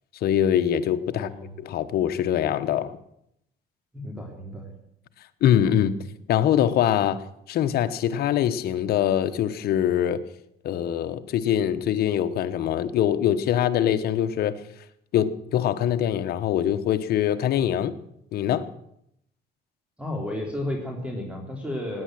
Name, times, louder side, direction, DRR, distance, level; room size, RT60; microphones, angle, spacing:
voice 1, 0.2-1.3 1.6-3.0 5.4-6.0 6.3-7.2 7.5-10.2 10.6-14.5 15.1-17.9 18.3-18.7, left 10 dB, 65° left, 10 dB, 1.1 m, -23 dB
voice 2, 1.1-1.5 3.9-4.7 20.0-22.0, left 1 dB, 5° right, 1 dB, 3.5 m, -32 dB
17.5 x 9.6 x 7.7 m, 0.75 s
cardioid pair, 110°, 17 cm